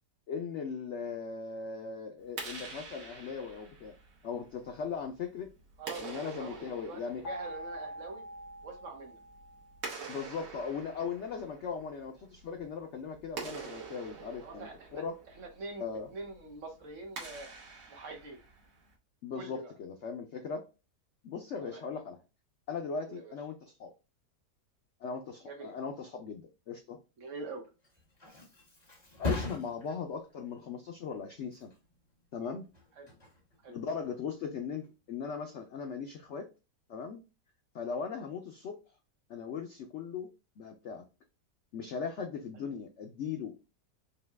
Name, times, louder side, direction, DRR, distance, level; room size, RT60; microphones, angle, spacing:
voice 1, 0.3-3.9 4.2-5.5 6.0-7.2 10.1-15.1 15.8-16.1 19.2-20.6 21.2-22.2 22.7-23.9 25.0-27.0 29.2-31.7 32.3-32.7 33.7-36.5 36.9-37.2 37.7-38.8 39.3-41.0 41.7-43.7, left 6 dB, 90° left, 5 dB, 0.6 m, -39 dB
Clapping, 2.2-18.9, right 4 dB, 80° right, 1.8 m, -47 dB
voice 2, 5.8-8.2 8.6-9.2 14.4-15.0 15.3-17.5 17.9-18.4 19.3-19.7 21.6-21.8 23.1-23.3 25.5-25.7 27.2-27.6 33.0-33.1 33.6-33.8 42.5-42.6, right 3 dB, 55° right, 3 dB, 1.0 m, -45 dB
sound 1, 7.2-10.2, equal, 60° left, 2.1 m, -44 dB
Thump thud, 27.6-35.1 35.5-35.9, left 3 dB, 25° left, 1.4 m, -42 dB
5.4 x 2.2 x 3.4 m, 0.30 s
omnidirectional pair, 1.9 m